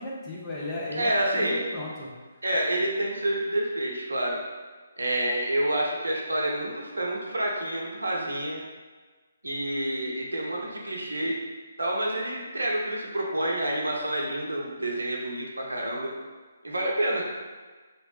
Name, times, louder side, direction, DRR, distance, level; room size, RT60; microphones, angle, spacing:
voice 1, 0.0-2.1, left 1 dB, 10° left, -7 dB, 0.7 m, -35 dB
voice 2, 1.0-1.6 2.4-4.4 5.0-8.6 9.4-11.3 11.8-16.1 16.6-17.2, right 1 dB, 70° right, -2 dB, 0.7 m, -28 dB
3.1 x 2.9 x 3.1 m, 1.4 s
figure-of-eight pair, 140°, 0 cm